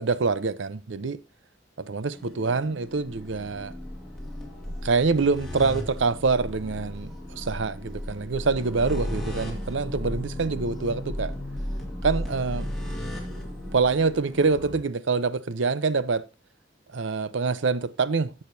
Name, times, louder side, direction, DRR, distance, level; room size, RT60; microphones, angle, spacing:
voice 1, 0.0-1.2 1.9-3.7 4.8-11.3 12.0-12.7 13.7-16.2 16.9-18.4, right 4 dB, 75° right, 0.7 m, -25 dB
sound 1, 2.1-14.8, left 1 dB, ahead, 2.2 m, -35 dB
17.0 x 6.6 x 2.7 m
head